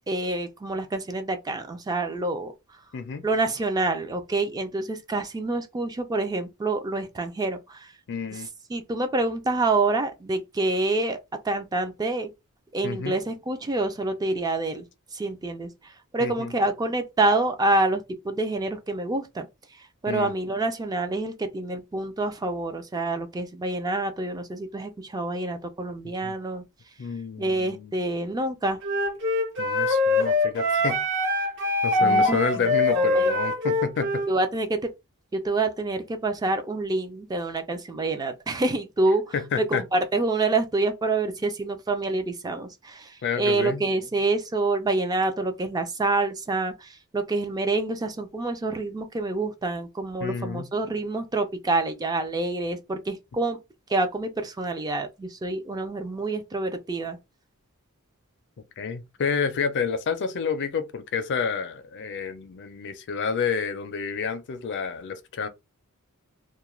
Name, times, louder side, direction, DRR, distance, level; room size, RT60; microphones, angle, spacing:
voice 1, 0.1-2.5 3.2-7.9 8.7-11.2 11.4-12.3 12.7-14.8 15.1-19.5 19.7-26.6 27.4-28.8 32.0-33.4 34.3-34.8 35.3-39.2 39.6-53.6 53.9-57.2, right 2 dB, 15° right, 0.3 m, -27 dB
voice 2, 2.9-3.3 8.1-8.5 12.8-13.2 16.2-16.5 20.1-20.3 26.2-26.3 27.0-28.0 29.6-31.0 31.8-34.2 39.3-39.8 43.2-43.9 50.2-50.7 58.8-65.5, left 6 dB, 55° left, 0.4 m, -29 dB
Wind instrument woodwind instrument, 28.8-34.3, left 2 dB, 55° right, 0.7 m, -23 dB
2.3 x 2.1 x 3.0 m
head